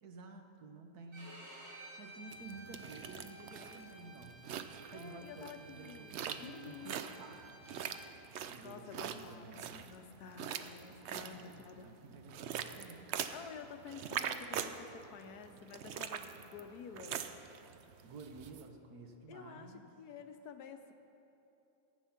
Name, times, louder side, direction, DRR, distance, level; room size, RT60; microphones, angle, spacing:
voice 1, 0.0-1.3 2.0-4.4 4.9-7.9 8.5-9.9 11.1-13.1 18.0-19.9, right 3 dB, 80° right, 4 dB, 1.6 m, -52 dB
Bowed string instrument, 1.1-8.1, right 1 dB, 35° right, 3.6 m, -54 dB
sound 1, 2.3-18.6, right 8 dB, 65° right, 0.7 m, -44 dB
voice 2, 4.9-7.1 8.6-11.9 13.3-17.2 19.3-20.9, left 6 dB, 85° left, 7 dB, 1.3 m, -51 dB
14.5 x 8.8 x 5.8 m, 2.9 s
omnidirectional pair, 1.6 m